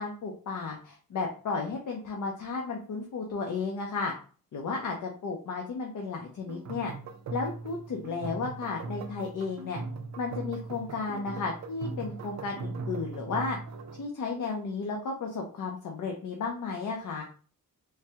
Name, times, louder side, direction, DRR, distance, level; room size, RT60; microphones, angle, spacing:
voice 1, 0.0-4.1 4.5-6.9 7.3-9.8 10.2-13.6 14.0-17.2, left 4 dB, 60° left, 1 dB, 0.6 m, -33 dB
sound 1, 6.5-14.1, right 3 dB, 50° right, 0.4 m, -39 dB
3.2 x 2.2 x 2.8 m, 0.41 s
wide cardioid pair, 165°, 36 cm